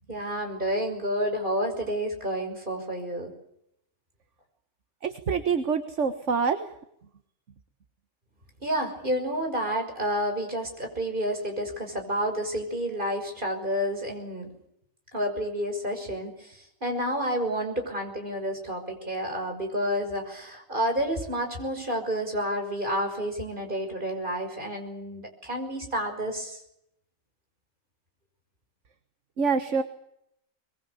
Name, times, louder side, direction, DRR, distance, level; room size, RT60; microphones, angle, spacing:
voice 1, 0.1-3.3 8.6-14.5 15.1-16.3 16.8-26.6, equal, 40° right, 4 dB, 6.1 m, -30 dB
voice 2, 5.0-6.7 29.4-29.8, right 5 dB, 65° right, 9 dB, 1.7 m, -26 dB
24.0 x 22.0 x 8.3 m, 0.76 s
omnidirectional pair, 1.4 m